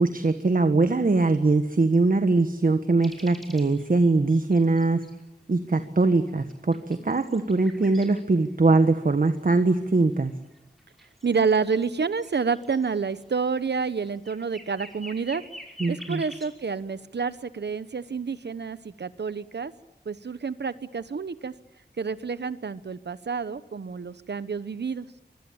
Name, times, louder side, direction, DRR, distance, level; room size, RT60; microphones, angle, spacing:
voice 1, 0.0-5.0 5.5-10.3 15.8-16.2, right 3 dB, 55° right, 9 dB, 1.5 m, -22 dB
sound 1, 3.0-5.2 5.8-5.9 6.3-8.2 8.5-16.5, equal, ahead, 5.6 m, -47 dB
voice 2, 11.2-15.4 15.9-19.7 20.1-21.5 22.0-25.1, right 5 dB, 80° right, 15 dB, 1.0 m, -29 dB
25.0 x 23.0 x 8.8 m, 0.97 s
wide cardioid pair, 75°, 18 cm